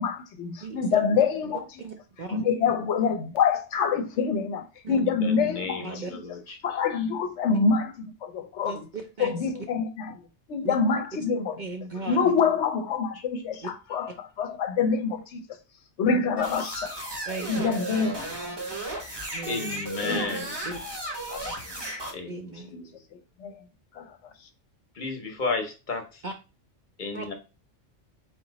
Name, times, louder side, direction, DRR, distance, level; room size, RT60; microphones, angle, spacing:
voice 1, 0.0-1.6 2.3-5.8 6.6-7.9 8.2-8.8 9.2-10.1 10.5-11.6 12.1-14.1 14.4-15.4 16.0-16.9 17.5-18.3 20.0-20.3 21.3-21.5 22.7-22.8 23.4-23.5 24.0-24.1, left 5 dB, 70° left, 0.9 m, -26 dB
voice 2, 0.6-1.0 1.8-2.4 4.8-5.0 5.8-6.1 8.6-9.3 10.6-10.7 11.6-12.3 13.6-13.7 17.3-17.7 19.3-19.8 20.7-20.8 22.3-22.7 26.2-26.3 27.1-27.3, right 3 dB, 55° right, 0.6 m, -37 dB
voice 3, 5.0-7.0 12.0-12.1 12.3-12.4 13.1-13.2 16.9-17.1 19.5-20.5 22.1-22.9 25.0-26.2 27.0-27.3, left 3 dB, 45° left, 0.9 m, -34 dB
sound 1, 16.4-22.1, right 1 dB, 25° right, 0.8 m, -34 dB
3.9 x 2.9 x 3.9 m
omnidirectional pair, 1.3 m